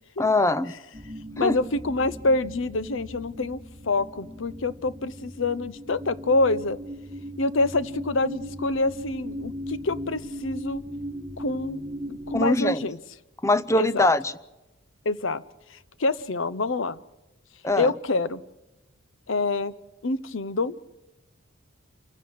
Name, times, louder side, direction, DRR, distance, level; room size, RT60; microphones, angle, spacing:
voice 1, 0.2-0.7 1.4-1.6 12.3-12.9 13.4-14.3 17.6-17.9, left 2 dB, 15° left, 14 dB, 0.6 m, -22 dB
sound 1, 0.9-12.5, equal, 20° right, 2.5 m, -38 dB
voice 2, 1.4-3.6 3.8-6.8 7.4-10.8 11.4-11.8 12.1-13.0 13.8-14.1 15.0-15.4 16.0-17.0 17.8-18.4 19.3-19.7 20.0-20.7, left 2 dB, 70° left, 17 dB, 0.8 m, -26 dB
27.5 x 16.0 x 6.4 m, 1.0 s
head